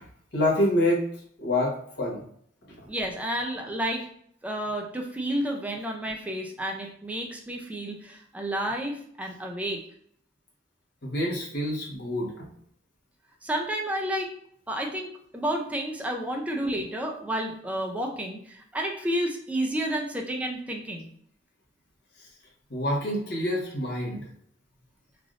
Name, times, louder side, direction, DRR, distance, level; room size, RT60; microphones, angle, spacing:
voice 1, 0.3-1.0 1.4-2.2 11.0-12.3 22.7-24.2, left 1 dB, 60° left, -3 dB, 1.0 m, -26 dB
voice 2, 2.9-4.0 4.4-9.8 13.4-14.3 14.7-21.1, right 1 dB, 5° right, 1 dB, 0.4 m, -31 dB
3.3 x 2.5 x 2.4 m, 0.65 s
head